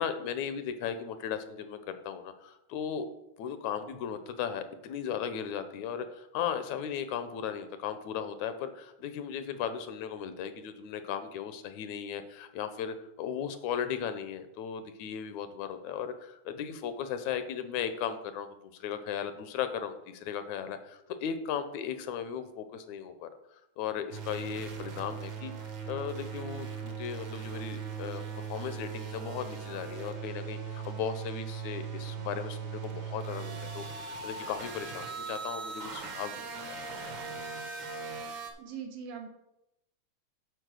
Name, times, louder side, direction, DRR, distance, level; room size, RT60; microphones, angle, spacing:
voice 1, 0.0-1.8 2.0-3.1 3.4-23.3 23.8-25.5 25.9-28.2 28.5-36.4, left 8 dB, 80° left, 10 dB, 1.9 m, -36 dB
sound 1, 24.1-38.5, right 6 dB, 55° right, 1.5 m, -39 dB
voice 2, 38.6-39.3, right 7 dB, 90° right, 3 dB, 2.8 m, -41 dB
9.1 x 4.3 x 6.3 m, 0.86 s
omnidirectional pair, 3.4 m